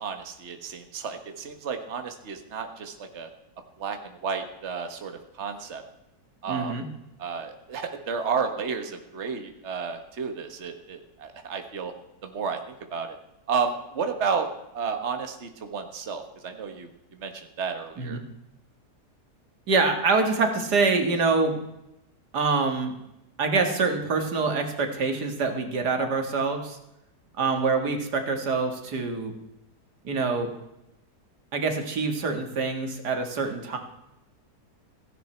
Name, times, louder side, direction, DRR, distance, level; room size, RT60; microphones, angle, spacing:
voice 1, 0.0-3.3 3.8-4.0 4.2-5.8 6.4-6.7 7.2-11.9 12.2-13.1 13.5-14.5 14.7-17.3 17.6-18.2, right 5 dB, 45° right, 6 dB, 1.7 m, -32 dB
voice 2, 6.5-6.8 18.0-18.2 19.7-21.6 22.3-22.9 23.4-26.8 27.4-29.3 30.0-30.5 31.5-33.8, right 4 dB, 85° right, 5 dB, 2.5 m, -25 dB
16.5 x 16.0 x 4.5 m, 0.89 s
omnidirectional pair, 1.7 m